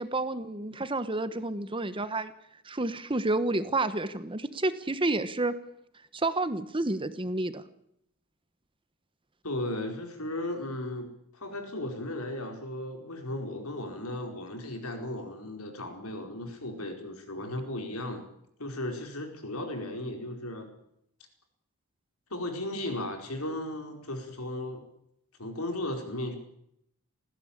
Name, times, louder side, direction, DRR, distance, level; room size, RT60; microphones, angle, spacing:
voice 1, 0.0-2.3 2.6-5.5 6.1-7.6, right 2 dB, 25° right, 13 dB, 1.2 m, -30 dB
voice 2, 9.4-18.2 18.6-20.7 22.3-24.8 25.4-26.4, left 1 dB, 80° left, 5 dB, 4.7 m, -35 dB
19.0 x 16.0 x 8.8 m, 0.74 s
head